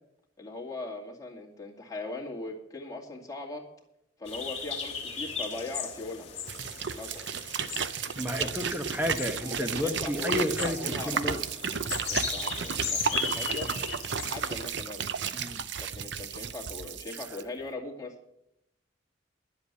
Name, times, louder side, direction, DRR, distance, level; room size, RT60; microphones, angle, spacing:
voice 1, 0.4-3.7 4.2-6.3 6.9-7.3 8.4-8.5 9.4-11.4 11.9-13.7 14.2-15.1 15.8-18.2, left 2 dB, 20° left, -1 dB, 2.3 m, -39 dB
sound 1, 4.3-14.7, left 6 dB, 35° left, 2.3 m, -37 dB
sound 2, 6.5-17.4, right 6 dB, 65° right, 0.6 m, -33 dB
voice 2, 7.8-11.4 15.3-15.6, left 1 dB, 10° right, 6 dB, 1.1 m, -32 dB
11.0 x 8.0 x 8.3 m, 0.81 s
head